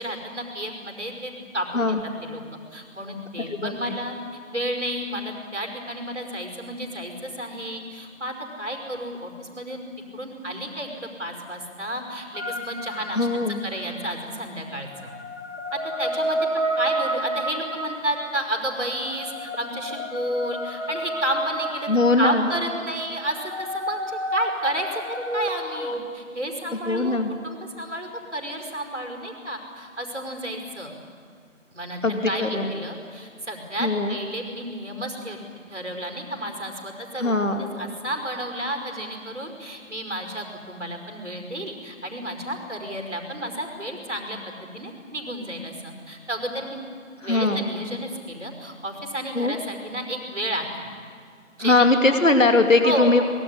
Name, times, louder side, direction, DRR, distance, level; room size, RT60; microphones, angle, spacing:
voice 1, 0.0-2.4 2.7-4.2 4.5-9.8 10.1-13.3 13.6-15.1 15.7-21.9 22.2-27.2 27.4-30.9 31.7-35.4 35.7-46.8 47.2-50.9 51.6-52.2 52.8-53.2, right 1 dB, 60° right, 3 dB, 5.3 m, -31 dB
voice 2, 3.5-4.0 13.2-13.6 21.9-22.5 26.8-27.3 32.0-32.7 33.8-34.2 37.2-37.7 47.2-47.7 49.3-49.5 51.6-53.2, left 2 dB, 70° left, 5 dB, 2.7 m, -21 dB
sound 1, 12.3-13.9 14.9-26.0, right 1 dB, 55° left, 2.4 m, -31 dB
24.0 x 21.5 x 10.0 m, 2.1 s
figure-of-eight pair, 180°, 40 cm